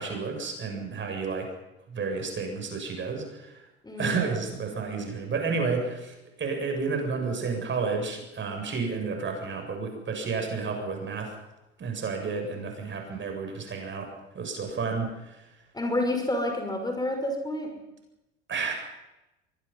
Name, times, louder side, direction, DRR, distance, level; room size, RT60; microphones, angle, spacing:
voice 1, 0.0-1.5 1.9-3.5 4.0-11.3 11.8-14.1 14.3-15.1 18.5-18.7, right 4 dB, 35° right, 3 dB, 7.5 m, -31 dB
voice 2, 3.8-4.2 15.7-17.7, left 1 dB, 10° left, 3 dB, 6.0 m, -29 dB
24.0 x 22.5 x 5.7 m, 0.96 s
hypercardioid pair, 75°, 34 cm